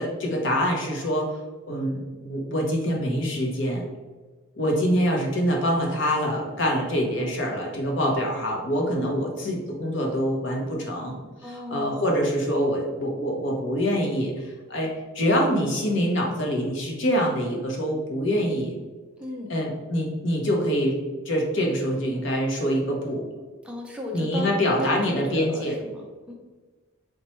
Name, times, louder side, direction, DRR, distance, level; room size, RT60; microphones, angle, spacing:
voice 1, 0.0-1.3 1.6-3.9 4.6-11.2 11.5-14.9 15.1-18.7 19.5-21.0 21.3-23.2 24.1-25.7, equal, 60° left, 0 dB, 0.7 m, -25 dB
voice 2, 11.4-12.0 19.2-19.5 23.6-26.3, left 1 dB, 5° right, -1 dB, 0.4 m, -36 dB
4.2 x 2.2 x 3.0 m, 1.3 s
head